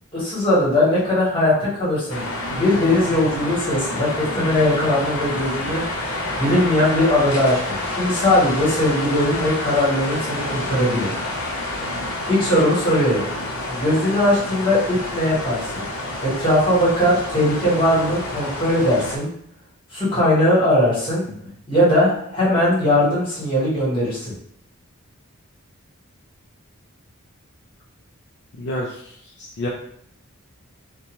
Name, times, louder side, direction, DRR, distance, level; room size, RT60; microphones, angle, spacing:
voice 1, 0.1-2.2 2.5-5.8 6.4-11.1 12.3-13.2 13.7-15.9 16.2-19.3 19.9-21.3 21.7-24.3, left 1 dB, 25° left, -8 dB, 1.3 m, -19 dB
sound 1, 2.1-19.2, left 1 dB, 80° left, 0.7 m, -28 dB
voice 2, 28.6-29.7, left 1 dB, 50° left, -2 dB, 0.4 m, -29 dB
2.6 x 2.2 x 2.9 m, 0.67 s
head